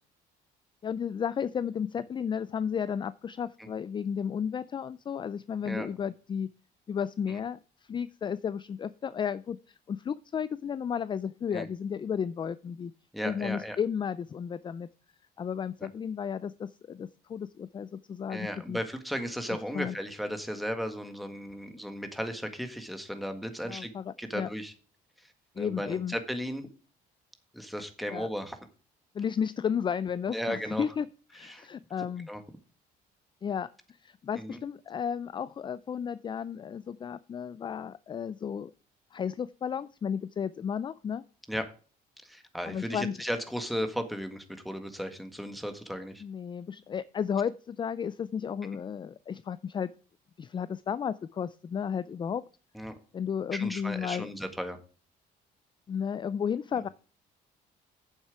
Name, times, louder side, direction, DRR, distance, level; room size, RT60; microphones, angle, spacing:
voice 1, 0.8-6.5 6.9-12.9 13.2-14.9 15.4-18.8 19.7-19.9 23.6-24.5 25.6-26.1 28.1-28.3 29.1-31.1 31.3-32.3 33.4-33.7 34.0-38.7 39.1-41.2 42.7-43.2 46.2-49.9 50.4-52.4 53.1-54.3 55.9-56.9, left 7 dB, 30° left, 17 dB, 0.4 m, -33 dB
voice 2, 13.1-13.8 15.8-15.9 18.3-23.9 24.2-24.7 25.5-26.7 27.5-28.6 30.3-30.8 31.4-31.7 32.3-32.4 34.4-34.6 41.5-41.7 42.2-46.2 52.7-53.0 53.5-54.8 56.7-56.8, equal, ahead, 7 dB, 1.7 m, -35 dB
8.8 x 7.4 x 4.8 m, 0.38 s
cardioid pair, 110°, 17 cm